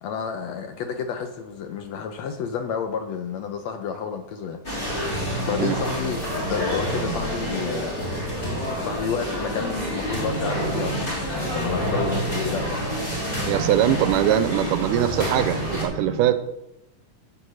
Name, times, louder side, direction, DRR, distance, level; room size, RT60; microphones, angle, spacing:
voice 1, 0.0-4.6 5.4-7.9 8.8-12.9, left 6 dB, 75° left, 6 dB, 1.7 m, -30 dB
sound 1, 4.6-15.8, equal, 15° left, 3.0 m, -28 dB
sound 2, 10.1-16.3, right 2 dB, 30° right, 0.5 m, -36 dB
voice 2, 13.5-16.4, right 11 dB, 80° right, 11 dB, 2.1 m, -22 dB
10.5 x 6.8 x 6.3 m, 0.87 s
omnidirectional pair, 3.8 m